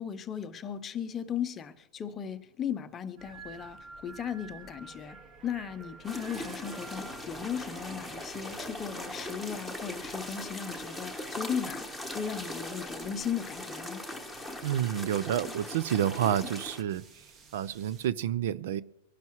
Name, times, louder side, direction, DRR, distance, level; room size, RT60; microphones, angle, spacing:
voice 1, 0.0-5.2 5.4-14.0, left 8 dB, 20° left, 0.7 m, -36 dB
sound 1, 3.2-18.1, right 4 dB, 20° right, 0.9 m, -53 dB
sound 2, 6.0-16.8, left 1 dB, 5° right, 1.2 m, -40 dB
voice 2, 14.6-17.0 17.5-18.8, right 10 dB, 60° right, 0.6 m, -29 dB
24.0 x 11.5 x 3.1 m
supercardioid pair, 160°, 0 cm